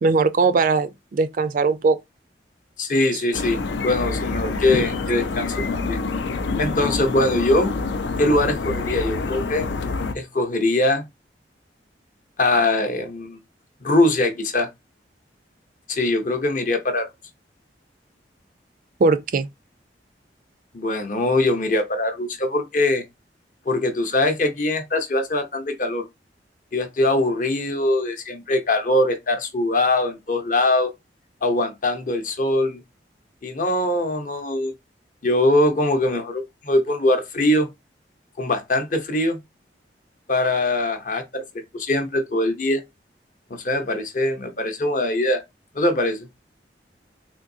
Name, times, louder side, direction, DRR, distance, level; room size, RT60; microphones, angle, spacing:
voice 1, 0.0-2.0 3.1-3.2 4.7-4.8 19.0-19.5, right 4 dB, 50° right, 0.3 m, -20 dB
voice 2, 2.8-6.0 6.6-7.7 8.2-9.7 10.1-11.0 12.4-13.4 13.8-14.7 15.9-17.1 20.7-23.0 23.7-26.0 26.7-30.9 31.4-32.8 33.4-34.7 35.2-37.7 38.4-39.4 40.3-41.4 41.7-42.8 43.5-45.4 45.7-46.3, left 1 dB, 45° left, 0.7 m, -22 dB
sound 1, 3.3-10.1, left 4 dB, 85° left, 0.5 m, -27 dB
3.7 x 2.6 x 2.6 m
head